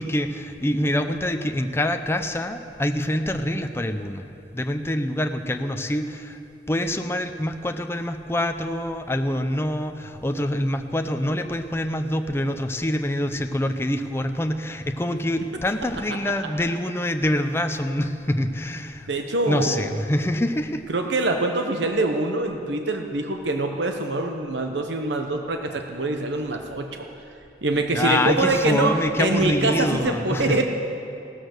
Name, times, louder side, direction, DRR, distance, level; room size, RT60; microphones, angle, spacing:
voice 1, 0.0-4.3 4.5-6.4 6.7-19.1 19.5-20.8 27.9-30.6, left 1 dB, 15° left, 6 dB, 0.6 m, -25 dB
voice 2, 19.1-19.8 20.9-27.1 27.6-30.6, right 2 dB, 85° right, 4 dB, 1.0 m, -24 dB
16.5 x 13.0 x 6.6 m, 2.6 s
head